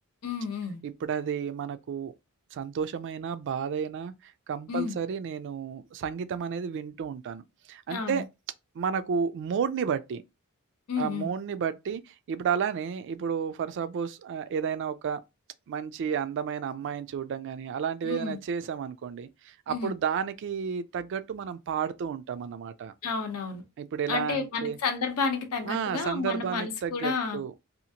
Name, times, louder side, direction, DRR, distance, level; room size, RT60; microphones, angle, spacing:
voice 1, 0.2-0.8 4.7-5.0 7.9-8.2 10.9-11.3 18.0-18.4 19.7-19.9 23.0-23.6 24.1-27.4, left 5 dB, 80° left, 0.7 m, -31 dB
voice 2, 0.8-2.1 2.5-8.2 8.7-10.2 11.0-15.2 15.7-22.9 23.8-24.8 25.6-27.5, right 7 dB, 55° right, 0.3 m, -32 dB
2.8 x 2.4 x 2.7 m
head